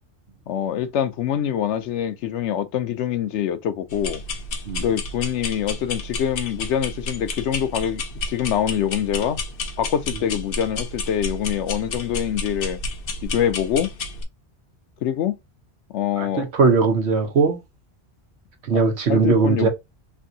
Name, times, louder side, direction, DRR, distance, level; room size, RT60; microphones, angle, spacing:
voice 1, 0.5-4.2 4.8-8.0 8.3-9.4 9.8-12.8 13.2-13.9 15.0-15.3 15.9-16.5 18.7-18.8 19.1-19.7, left 9 dB, 90° left, 0.9 m, -24 dB
sound 1, 3.9-14.2, left 2 dB, 60° left, 0.8 m, -31 dB
voice 2, 16.2-17.6 18.6-19.7, right 4 dB, 70° right, 1.2 m, -19 dB
3.3 x 2.6 x 2.6 m
omnidirectional pair, 1.1 m